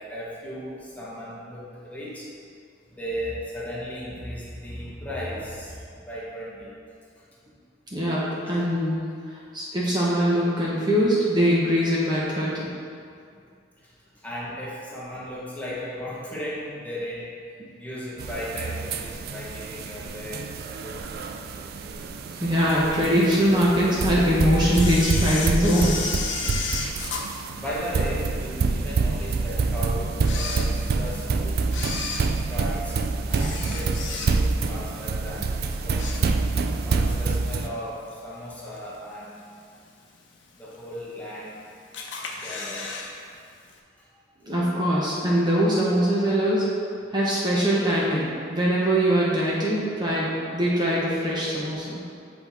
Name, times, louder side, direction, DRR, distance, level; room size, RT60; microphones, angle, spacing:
voice 1, 0.0-2.3 2.9-6.7 8.4-8.7 13.8-17.3 17.7-21.2 26.4-26.7 27.6-31.7 32.5-33.0 33.3-36.2 36.8-39.4 40.6-41.6 42.3-43.0 44.0-44.1, equal, 10° left, -7 dB, 1.2 m, -36 dB
voice 2, 7.9-9.0 9.5-12.7 17.6-17.7 22.4-26.0 44.4-46.6 47.1-52.0, equal, 25° right, -6 dB, 0.8 m, -22 dB
sound 1, 18.2-37.7, right 4 dB, 55° right, 0.4 m, -27 dB
Camera, 24.7-28.3 28.8-28.9 29.6-29.7 30.1-31.2 31.6-34.7 35.0-35.3 35.7-36.7 37.0-37.1 38.1-38.2 38.8-39.2 39.6-39.7 39.9-40.0 40.1-40.2 41.0-41.5 41.9-43.1 43.4-43.5 43.7-43.8, left 4 dB, 75° left, 0.7 m, -33 dB
7.9 x 4.3 x 3.5 m, 2.4 s
head